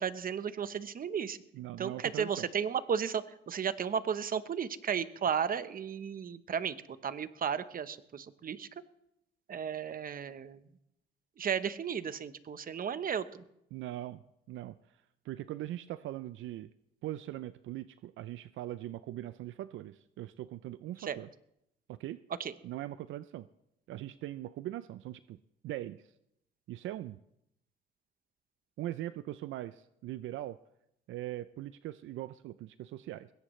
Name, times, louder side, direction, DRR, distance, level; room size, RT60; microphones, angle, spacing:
voice 1, 0.0-1.4 1.8-6.7 7.0-8.7 9.5-10.6 11.4-13.4 21.0-21.2 22.4-22.5, right 7 dB, 45° right, 13 dB, 0.9 m, -34 dB
voice 2, 1.5-2.5 13.7-14.2 14.5-14.8 15.2-16.7 17.0-21.3 21.9-22.2 22.6-23.5 23.9-25.4 25.6-26.1 26.7-27.2 28.8-30.6 31.1-33.3, right 14 dB, 80° right, 14 dB, 0.5 m, -41 dB
21.0 x 17.5 x 3.2 m, 0.79 s
cardioid pair, 90°, 20 cm